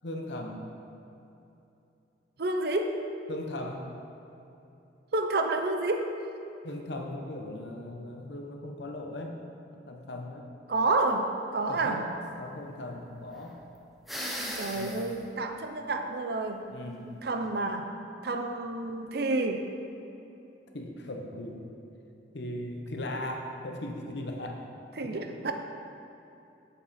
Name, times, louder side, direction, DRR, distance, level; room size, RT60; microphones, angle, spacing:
voice 1, 0.0-0.7 3.3-3.9 6.6-9.4 9.7-10.5 11.7-12.1 12.4-13.6 14.6-15.1 16.7-17.1 20.7-21.7 22.3-24.7 25.0-25.1, left 1 dB, 65° left, 2 dB, 0.8 m, -38 dB
voice 2, 2.4-3.0 5.1-6.1 10.7-12.1 14.2-16.6 17.2-18.0 18.2-19.7 25.0-25.5, right 2 dB, 55° right, 6 dB, 0.5 m, -29 dB
sound 1, 14.1-15.2, equal, ahead, 0.6 m, -36 dB
7.2 x 7.1 x 4.2 m, 2.9 s
head